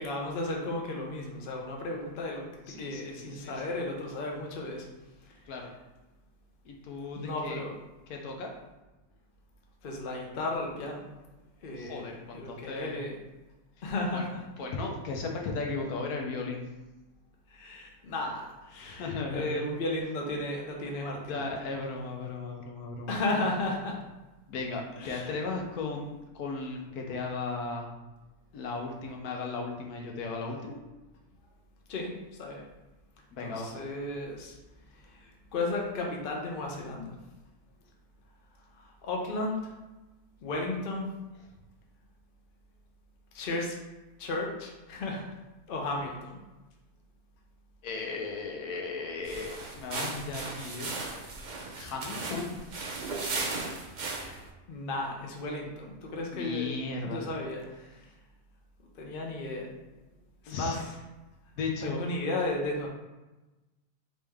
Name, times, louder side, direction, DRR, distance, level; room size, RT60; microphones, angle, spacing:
voice 1, 0.0-4.9 5.2-5.4 7.1-7.8 9.8-11.1 11.6-12.1 12.3-13.2 13.8-14.4 17.5-21.4 23.1-24.0 25.0-25.3 31.9-32.6 33.4-34.6 34.9-37.1 38.7-39.7 40.4-41.1 43.3-43.8 44.2-45.3 45.7-46.4 52.3-52.4 54.1-54.4 54.7-56.7 57.0-58.1 58.9-59.7 60.4-60.9 61.8-62.9, left 2 dB, 45° left, 0 dB, 0.7 m, -34 dB
voice 2, 2.7-3.6 5.5-5.7 6.6-7.6 8.1-8.5 11.8-13.0 14.1-14.2 14.6-16.6 18.8-19.6 21.3-23.1 24.5-28.0 28.5-30.8 33.3-33.8 47.8-50.9 51.8-52.5 56.3-57.3 60.5-60.8 61.6-62.0, left 3 dB, 75° left, 1 dB, 1.2 m, -36 dB
sound 1, 49.2-54.5, right 3 dB, 70° right, 0.4 m, -36 dB
4.1 x 3.5 x 3.5 m, 1.1 s
omnidirectional pair, 1.6 m